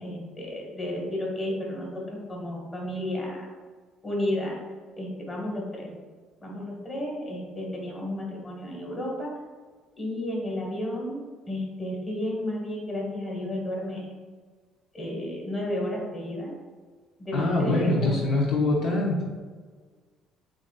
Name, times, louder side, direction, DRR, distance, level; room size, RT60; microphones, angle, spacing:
voice 1, 0.0-3.5 4.0-4.6 5.0-5.9 6.4-9.3 10.0-11.2 11.5-14.1 14.9-16.5 17.2-18.1, left 1 dB, 25° left, -2 dB, 1.5 m, -32 dB
voice 2, 17.3-19.2, left 2 dB, 65° left, -3 dB, 0.8 m, -24 dB
7.1 x 2.6 x 2.4 m, 1.5 s
cardioid pair, 105°, 0 cm